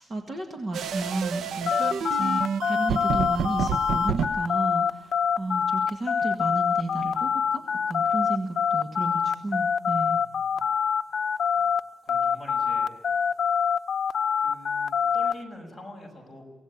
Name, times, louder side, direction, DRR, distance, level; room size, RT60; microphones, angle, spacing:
voice 1, 0.0-10.2, right 2 dB, 30° right, 4 dB, 1.8 m, -33 dB
sound 1, 0.7-4.3, right 7 dB, 85° right, 0.8 m, -29 dB
sound 2, 1.7-11.8 12.1-15.3, left 7 dB, 55° left, 0.8 m, -25 dB
voice 2, 11.1-11.6 12.0-12.9 14.4-16.4, left 1 dB, ahead, 2 dB, 6.4 m, -46 dB
24.5 x 17.5 x 8.8 m, 1.3 s
wide cardioid pair, 170°, 0 cm